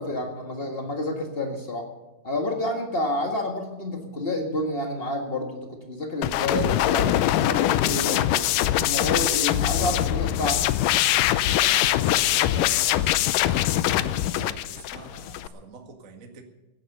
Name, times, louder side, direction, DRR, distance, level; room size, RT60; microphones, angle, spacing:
voice 1, 0.0-1.9 2.2-8.5 8.7-10.7, left 1 dB, 55° left, 3 dB, 0.6 m, -29 dB
sound 1, 6.2-15.5, left 13 dB, 80° left, 2.1 m, -23 dB
voice 2, 11.6-16.4, right 4 dB, 40° right, 4 dB, 1.2 m, -44 dB
16.5 x 10.5 x 6.7 m, 1.1 s
omnidirectional pair, 4.1 m